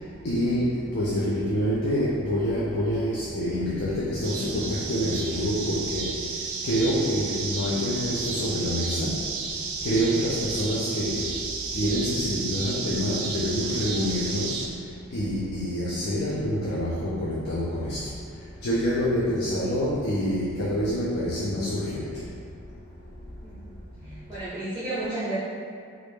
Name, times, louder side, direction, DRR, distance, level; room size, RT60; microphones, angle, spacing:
voice 1, 0.2-6.2 6.6-9.1 9.8-11.3 11.7-14.6 15.1-18.0 18.6-22.1, equal, 50° left, -7 dB, 0.4 m, -26 dB
sound 1, 4.2-14.7, right 4 dB, 70° right, 0.4 m, -32 dB
voice 2, 23.4-23.8 24.0-25.4, right 2 dB, 20° right, -13 dB, 0.5 m, -33 dB
3.1 x 2.5 x 3.3 m, 2.2 s
head